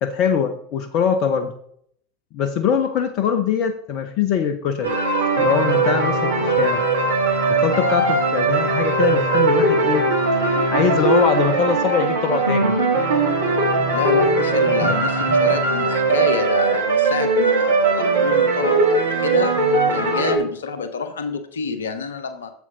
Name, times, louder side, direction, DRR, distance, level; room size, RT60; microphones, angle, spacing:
voice 1, 0.0-1.5 2.3-5.0 5.4-6.8 7.5-10.1 10.7-12.8 14.8-15.0 15.3-15.4, left 7 dB, 50° left, 9 dB, 0.8 m, -22 dB
sound 1, 4.8-20.4, right 3 dB, 80° right, 2.3 m, -19 dB
voice 2, 13.9-19.6 19.9-22.5, left 5 dB, 75° left, 9 dB, 1.2 m, -27 dB
8.0 x 7.7 x 3.9 m, 0.66 s
figure-of-eight pair, 80°, 0 cm